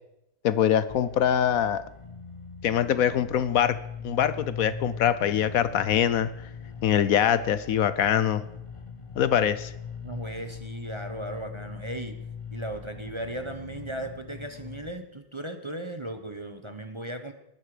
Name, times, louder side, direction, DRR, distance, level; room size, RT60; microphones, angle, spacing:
voice 1, 0.4-1.8 2.6-3.8 4.0-6.3 6.8-8.4 9.2-9.7, left 9 dB, 70° left, 15 dB, 1.1 m, -23 dB
sound 1, 0.9-14.9, left 6 dB, 25° left, 1.0 m, -41 dB
voice 2, 10.0-12.2 12.5-17.3, right 1 dB, 20° right, 7 dB, 1.0 m, -36 dB
20.0 x 11.5 x 5.0 m, 0.84 s
omnidirectional pair, 1.6 m